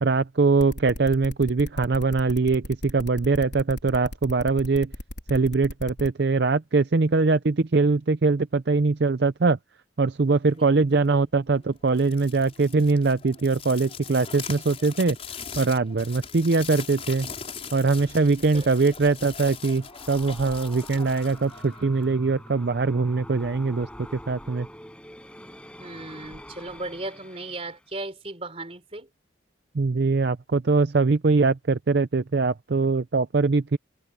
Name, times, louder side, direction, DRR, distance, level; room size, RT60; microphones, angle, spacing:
voice 1, 0.0-4.9 5.3-9.6 10.0-15.2 15.6-17.3 17.7-24.7 29.7-33.8, right 3 dB, 55° right, 0.5 m, -22 dB
sound 1, 0.6-6.1, left 1 dB, 60° left, 4.0 m, -36 dB
sound 2, 11.8-22.2, left 6 dB, 30° left, 5.5 m, -40 dB
sound 3, 19.6-27.9, left 1 dB, 5° left, 5.4 m, -45 dB
voice 2, 25.8-29.1, right 2 dB, 30° right, 3.6 m, -37 dB
head